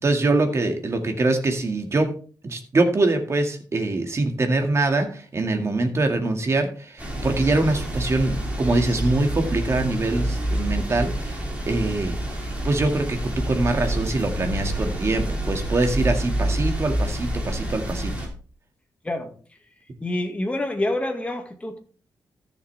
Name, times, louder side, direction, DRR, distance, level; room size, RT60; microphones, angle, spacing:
voice 1, 0.0-2.1 2.4-12.2 12.6-18.3, right 2 dB, 40° right, 5 dB, 2.0 m, -24 dB
sound 1, 7.0-18.3, right 1 dB, 20° right, 3.4 m, -27 dB
voice 2, 20.0-21.8, left 1 dB, 15° left, 4 dB, 1.9 m, -27 dB
14.0 x 6.9 x 3.4 m, 0.40 s
cardioid pair, 110°, 7 cm